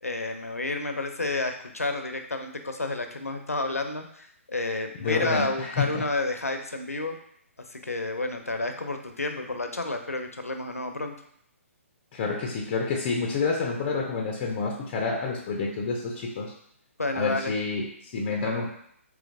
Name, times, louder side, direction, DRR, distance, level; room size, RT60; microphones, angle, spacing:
voice 1, 0.0-7.2 7.7-11.2 17.0-17.5, left 2 dB, 90° left, 5 dB, 0.5 m, -30 dB
voice 2, 5.0-6.1 12.1-16.5 17.1-18.7, left 4 dB, 30° left, 1 dB, 0.4 m, -28 dB
3.9 x 3.0 x 2.5 m, 0.67 s
figure-of-eight pair, 130°, 8 cm